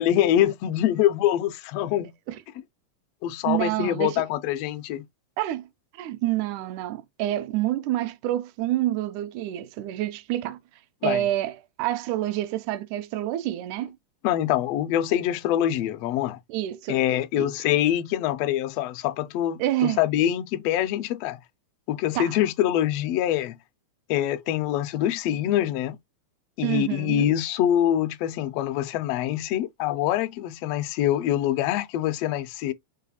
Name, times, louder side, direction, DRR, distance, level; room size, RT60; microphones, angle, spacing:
voice 1, 0.0-2.1 3.2-5.0 11.0-11.2 14.2-16.4 16.9-21.4 21.9-23.5 24.1-26.0 26.6-32.7, left 12 dB, 85° left, 1.4 m, -24 dB
voice 2, 3.4-4.2 5.4-5.7 5.9-10.6 11.0-11.5 11.8-14.0 16.5-17.0 17.4-17.5 19.6-20.0 22.2-22.3 26.6-27.3, right 14 dB, 80° right, 1.9 m, -27 dB
4.8 x 2.3 x 4.0 m
omnidirectional pair, 3.6 m